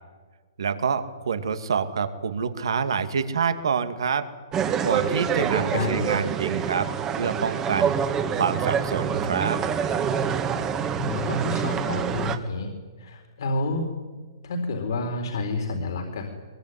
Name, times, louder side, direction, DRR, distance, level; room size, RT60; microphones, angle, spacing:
voice 1, 0.6-4.3 4.8-6.9 7.1-9.6, right 6 dB, 75° right, 10 dB, 2.4 m, -27 dB
sound 1, 4.5-12.4, right 7 dB, 20° right, 1.8 m, -26 dB
voice 2, 5.5-6.2 11.0-12.7 13.0-13.9 14.4-16.2, left 2 dB, 65° left, 4 dB, 4.1 m, -29 dB
22.5 x 22.0 x 9.7 m, 1.4 s
hypercardioid pair, 140°, 2 cm